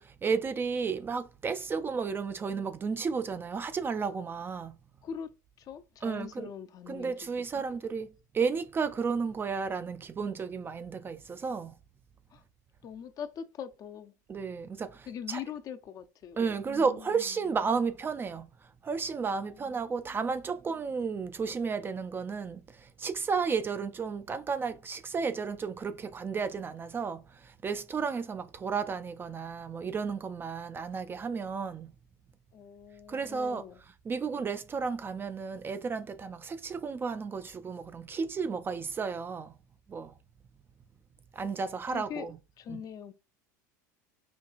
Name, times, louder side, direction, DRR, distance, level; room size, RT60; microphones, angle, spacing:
voice 1, 0.0-4.8 6.0-6.5 6.9-11.8 14.3-15.4 16.4-31.9 33.1-33.6 34.1-39.5 39.9-40.1 41.3-42.4 42.7-42.8, right 5 dB, 25° right, 0.3 m, -33 dB
voice 2, 5.0-7.1 7.5-7.6 12.3-12.4 12.8-14.1 15.1-16.4 16.7-17.4 19.4-20.2 32.5-33.8 41.9-42.3 42.6-43.1, left 8 dB, 40° left, 0.5 m, -42 dB
5.1 x 2.3 x 2.4 m
hypercardioid pair, 85°, 10 cm